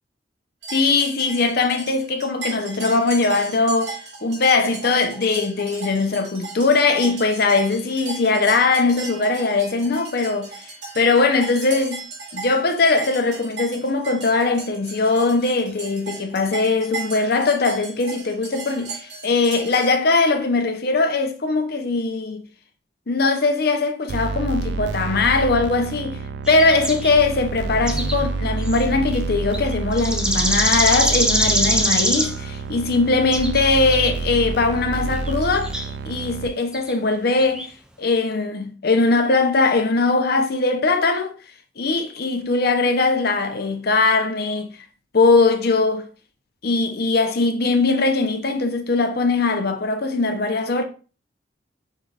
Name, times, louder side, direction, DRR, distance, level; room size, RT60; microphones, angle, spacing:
sound 1, 0.6-19.9, right 4 dB, 85° right, 2.3 m, -36 dB
voice 1, 0.7-3.9 4.2-10.5 10.9-12.0 12.3-22.4 23.1-35.7 36.1-37.7 38.0-41.3 41.8-44.7 45.1-46.1 46.6-50.8, left 3 dB, 60° left, 0.7 m, -20 dB
sound 2, 24.1-36.5, right 4 dB, 70° right, 0.4 m, -28 dB
sound 3, 26.5-27.2 27.7-28.3 28.6-28.8 29.1-29.2 29.5-32.4 33.2-33.6 33.9-34.1 35.2-35.9 36.7-36.9 37.4-37.7, right 1 dB, 5° right, 0.5 m, -23 dB
6.6 x 3.3 x 2.4 m
head